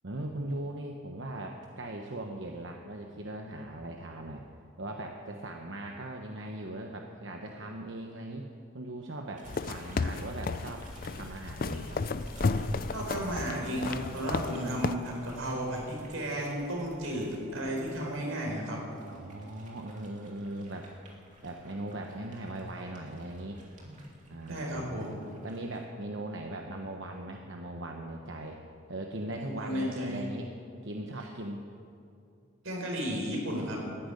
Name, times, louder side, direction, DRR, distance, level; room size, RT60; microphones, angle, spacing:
voice 1, 0.0-4.4 4.8-8.5 8.7-10.8 11.1-12.0 19.1-20.9 21.4-23.6 24.3-25.2 25.4-28.6 28.9-30.5 30.8-31.6, right 1 dB, 65° right, 2 dB, 1.1 m, -39 dB
sound 1, 9.3-18.0 18.6-25.8, right 1 dB, 40° right, 2.6 m, -51 dB
sound 2, 9.5-14.9, left 4 dB, 45° left, 0.5 m, -33 dB
voice 2, 12.9-18.8 24.5-25.2 29.4-30.2 32.6-33.8, equal, 85° right, -1 dB, 4.9 m, -33 dB
14.0 x 10.5 x 9.8 m, 2.5 s
head